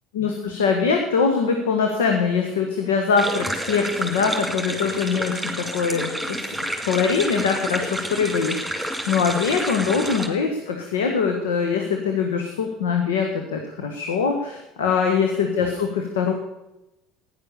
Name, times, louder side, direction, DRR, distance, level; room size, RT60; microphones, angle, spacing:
voice 1, 0.1-16.3, left 5 dB, 80° left, 4 dB, 1.5 m, -23 dB
sound 1, 3.2-10.3, right 1 dB, ahead, 3.6 m, -29 dB
15.0 x 10.5 x 6.7 m, 0.94 s
hypercardioid pair, 70°, 0 cm